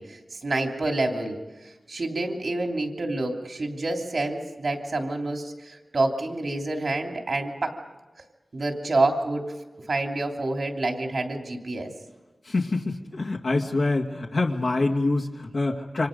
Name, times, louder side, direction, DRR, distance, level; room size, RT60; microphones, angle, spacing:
voice 1, 0.0-1.4 1.9-7.7 8.5-9.5 9.9-11.9, right 2 dB, 70° right, 3 dB, 3.0 m, -28 dB
voice 2, 12.5-16.1, left 2 dB, 75° left, -1 dB, 2.1 m, -25 dB
28.5 x 25.5 x 5.3 m, 1.2 s
wide cardioid pair, 55°, 0 cm